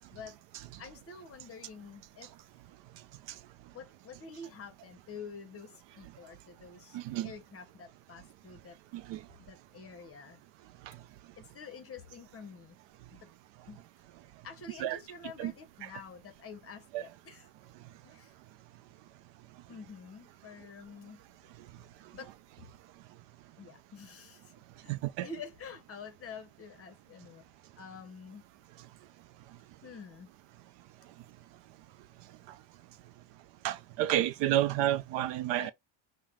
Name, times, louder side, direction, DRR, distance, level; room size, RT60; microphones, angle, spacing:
voice 1, 0.8-2.3 3.7-7.0 7.2-8.8 9.4-10.4 11.4-12.8 13.1-13.3 13.7-13.8 14.4-17.5 18.0-18.3 19.7-21.2 22.1-22.3 23.6-24.5 24.8-24.9 25.2-27.4 27.8-28.4 29.8-30.3 35.5-35.7, left 5 dB, 30° left, 0.9 m, -48 dB
voice 2, 6.9-7.3 9.1-9.2 14.8-15.0 15.4-15.5 15.8-15.9 16.9-17.0 24.9-25.3 33.6-35.7, right 13 dB, 65° right, 0.5 m, -30 dB
5.6 x 2.2 x 3.0 m
cardioid pair, 160°, 48 cm